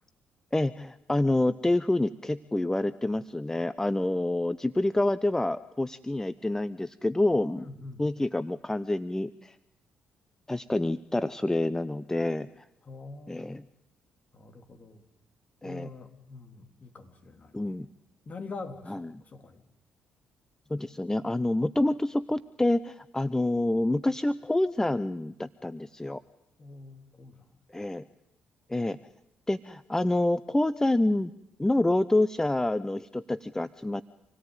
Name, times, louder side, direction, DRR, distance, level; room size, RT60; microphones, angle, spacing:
voice 1, 0.5-7.7 8.0-9.6 10.5-12.5 13.3-13.6 15.6-15.9 17.5-17.9 18.9-19.1 20.7-26.2 27.7-28.0 28.7-29.0 29.5-31.3 31.6-34.0, left 1 dB, 15° left, 14 dB, 0.8 m, -27 dB
voice 2, 7.5-8.0 12.8-13.6 14.3-15.0 15.6-17.8 18.3-19.6 26.6-27.5, left 3 dB, 40° left, 5 dB, 3.7 m, -44 dB
27.0 x 17.5 x 9.2 m, 0.81 s
hypercardioid pair, 45°, 4 cm